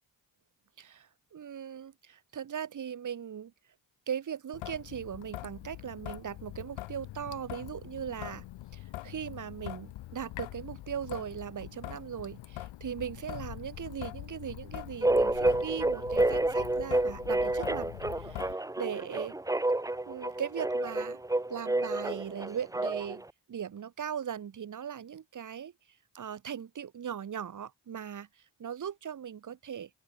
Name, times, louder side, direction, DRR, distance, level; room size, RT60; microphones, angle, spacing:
voice 1, 0.8-3.5 4.1-8.5 8.7-17.9 18.2-19.3 20.1-21.2 21.5-23.2 23.5-25.7 26.1-28.3 28.6-29.9, right 8 dB, 40° right, 0.9 m, -39 dB
Traffic noise roadway noise / Drip / Trickle dribble, 4.5-18.5, left 16 dB, 70° left, 0.6 m, -43 dB
sound 1, 15.0-23.2, right 2 dB, 5° right, 0.7 m, -29 dB
open air
supercardioid pair, 45°, 48 cm